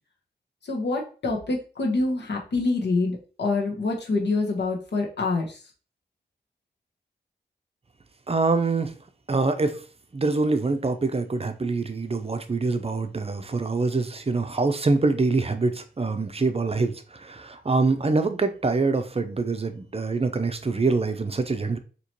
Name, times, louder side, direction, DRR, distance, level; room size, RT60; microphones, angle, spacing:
voice 1, 0.6-5.6, left 3 dB, 75° left, 0 dB, 1.1 m, -26 dB
voice 2, 8.3-8.9 9.3-9.8 10.1-21.8, right 3 dB, 35° right, 8 dB, 0.6 m, -25 dB
4.3 x 2.9 x 2.9 m, 0.38 s
cardioid pair, 65°, 18 cm